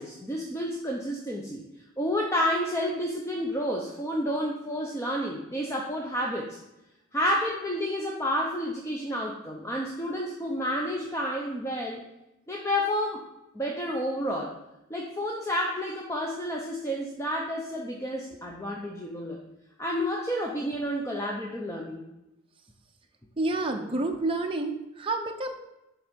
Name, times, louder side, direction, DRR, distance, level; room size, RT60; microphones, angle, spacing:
voice 1, 0.0-1.6 2.0-6.6 7.1-12.0 12.5-13.2 13.5-14.5 14.9-19.4 19.8-22.0, equal, 15° left, -1 dB, 0.7 m, -30 dB
voice 2, 23.4-25.5, right 2 dB, 25° right, 3 dB, 0.8 m, -29 dB
10.5 x 3.8 x 5.3 m, 0.92 s
head